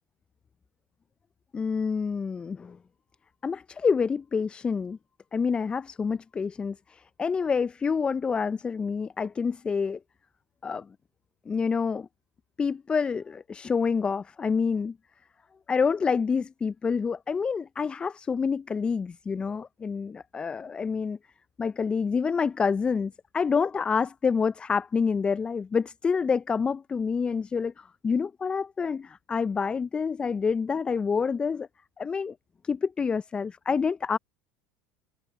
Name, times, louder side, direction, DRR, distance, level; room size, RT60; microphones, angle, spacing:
voice 1, 1.5-2.8 3.4-5.0 5.3-10.0 10.6-10.9 11.5-12.1 12.6-15.0 15.7-21.2 21.6-31.7 32.0-32.3 32.6-34.2, left 5 dB, 25° left, 0.6 m, -27 dB
hypercardioid pair, 80°, 4 cm